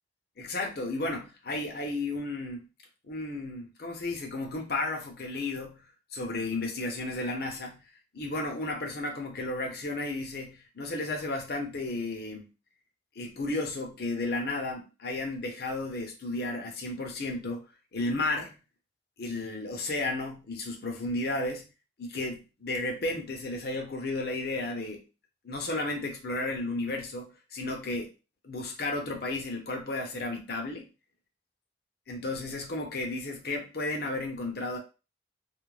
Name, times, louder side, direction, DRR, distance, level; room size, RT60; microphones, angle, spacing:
voice 1, 0.4-2.6 3.0-5.8 6.1-7.8 8.1-12.4 13.2-17.6 17.9-18.6 19.2-21.7 22.0-25.0 25.4-28.1 28.4-30.9 32.1-34.8, left 2 dB, 50° left, 2 dB, 0.6 m, -33 dB
2.4 x 2.1 x 3.1 m, 0.31 s
head